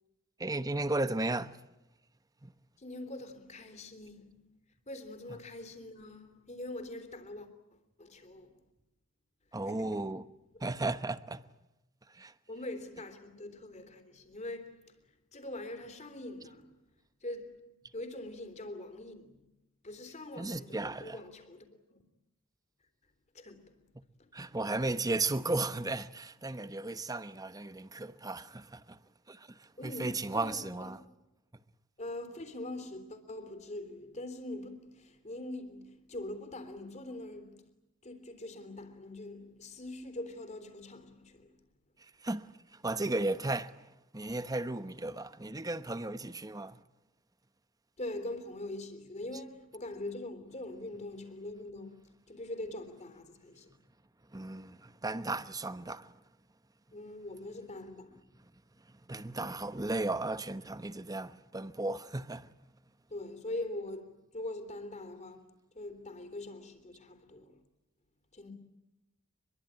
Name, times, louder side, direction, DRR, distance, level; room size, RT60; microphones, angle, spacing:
voice 1, 0.4-1.6 2.4-2.5 9.5-10.3 10.6-11.4 12.1-12.3 20.4-21.2 24.3-29.0 29.3-31.0 42.0-46.8 54.3-56.2 58.8-62.5, right 2 dB, 20° right, 1.0 m, -35 dB
voice 2, 2.8-4.6 4.9-8.7 9.7-10.1 12.5-15.0 15.3-16.8 17.2-19.5 19.8-22.0 23.3-23.8 24.2-24.3 29.8-30.9 32.0-37.7 38.0-41.6 48.0-53.8 56.9-58.2 63.1-67.6 68.3-68.5, left 1 dB, 35° left, 3.5 m, -43 dB
25.5 x 22.5 x 9.0 m
head